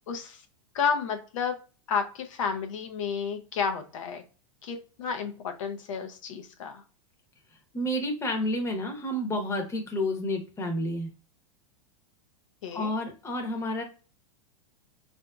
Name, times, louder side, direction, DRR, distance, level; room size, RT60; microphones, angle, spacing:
voice 1, 0.1-0.4 0.7-1.6 1.9-4.2 4.6-6.8 12.6-12.9, left 6 dB, 70° left, 6 dB, 0.6 m, -31 dB
voice 2, 7.7-11.1 12.7-13.8, left 1 dB, 15° left, 3 dB, 0.8 m, -30 dB
3.7 x 2.6 x 2.2 m, 0.35 s
hypercardioid pair, 115°, 17 cm